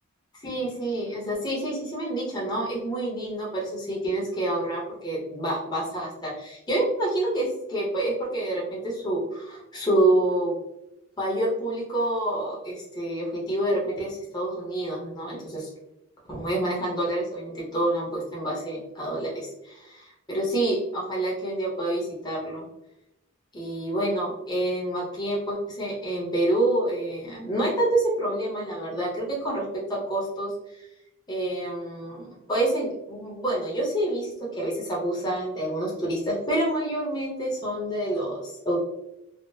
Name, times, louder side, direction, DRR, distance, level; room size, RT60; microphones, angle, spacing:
voice 1, 0.4-10.5 11.2-15.7 16.3-22.7 23.5-29.6 29.9-30.5 30.8-30.9 31.3-38.8, right 1 dB, 20° left, -4 dB, 0.8 m, -27 dB
3.5 x 2.0 x 2.6 m, 0.88 s
head